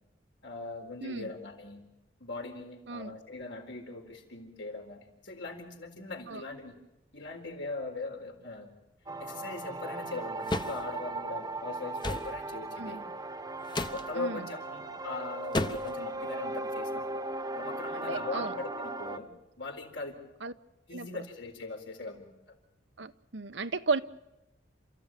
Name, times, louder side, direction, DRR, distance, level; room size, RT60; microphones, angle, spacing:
voice 1, 0.4-1.8 2.2-6.8 7.1-8.7 9.2-13.1 13.9-17.3 17.5-19.3 19.6-20.1 20.9-22.6, left 3 dB, 75° left, 4.2 m, -40 dB
sound 1, 9.1-19.2, right 2 dB, 20° right, 1.1 m, -37 dB
sound 2, 10.5-10.8 12.0-12.3 13.7-14.0 15.5-16.0, left 2 dB, 25° left, 1.0 m, -31 dB
voice 2, 14.2-14.5 17.9-18.5 20.4-20.5 20.9-21.1 23.0-24.0, right 4 dB, 70° right, 0.9 m, -34 dB
28.5 x 14.5 x 9.1 m
head